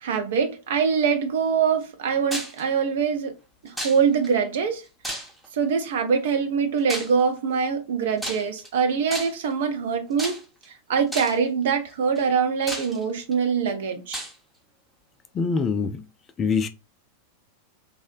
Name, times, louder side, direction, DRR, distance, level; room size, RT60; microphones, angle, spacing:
voice 1, 0.0-3.4 3.6-4.8 5.5-10.4 10.9-14.2, right 6 dB, 55° right, 0.5 m, -24 dB
sound 1, 2.3-2.6 3.8-4.3 5.0-5.6 6.9-7.2 8.2-8.7 9.1-9.5 10.2-10.6 11.1-11.5 12.1-12.2 12.7-13.3 14.1-14.3, right 1 dB, ahead, 0.7 m, -33 dB
voice 2, 15.3-16.0 16.4-16.7, left 5 dB, 25° left, 0.3 m, -24 dB
2.7 x 2.0 x 2.4 m
figure-of-eight pair, 90°, 0 cm